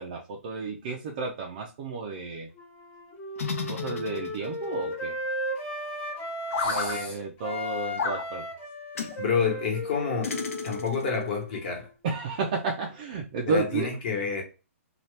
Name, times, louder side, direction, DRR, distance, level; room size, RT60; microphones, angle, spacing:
voice 1, 0.0-2.5 3.7-5.1 6.6-8.5 12.0-13.9, right 4 dB, 30° right, 0.4 m, -32 dB
Wind instrument woodwind instrument, 2.6-7.1 7.4-11.9, left 1 dB, 15° left, 0.6 m, -36 dB
sound 1, 3.4-4.6 6.5-7.0 8.0-8.2 9.0-9.2 10.2-11.1, left 5 dB, 70° left, 0.8 m, -31 dB
voice 2, 6.6-7.1 9.2-10.3 10.6-11.9 13.5-14.4, left 5 dB, 40° left, 1.1 m, -29 dB
2.8 x 2.3 x 3.2 m
hypercardioid pair, 165°, 8 cm